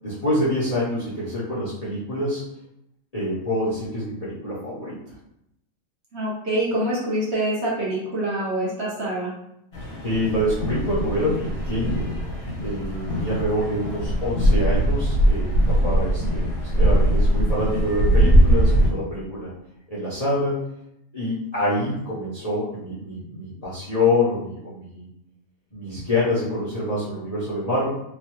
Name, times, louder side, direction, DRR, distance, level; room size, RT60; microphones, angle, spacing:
voice 1, 0.0-2.4 3.1-5.0 10.0-12.2 12.6-19.5 19.9-20.6 21.1-25.1 25.7-27.9, left 1 dB, 35° left, -9 dB, 0.7 m, -26 dB
voice 2, 6.1-9.3, right 1 dB, 55° right, -5 dB, 1.0 m, -25 dB
sound 1, 9.7-18.9, right 1 dB, 75° left, 1.3 m, -21 dB
3.1 x 2.2 x 2.9 m, 0.79 s
omnidirectional pair, 1.5 m